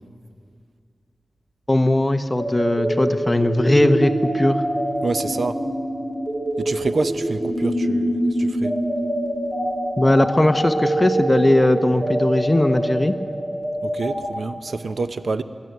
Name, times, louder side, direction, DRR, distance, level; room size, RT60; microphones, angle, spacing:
voice 1, 1.7-4.6 10.0-13.1, left 1 dB, 20° left, 9 dB, 0.9 m, -18 dB
sound 1, 2.4-14.3, right 1 dB, 45° right, 5.3 m, -25 dB
voice 2, 5.0-5.6 6.6-8.7 13.8-15.4, right 3 dB, 70° right, 11 dB, 0.8 m, -27 dB
22.0 x 14.0 x 9.4 m, 2.2 s
wide cardioid pair, 100°, 0 cm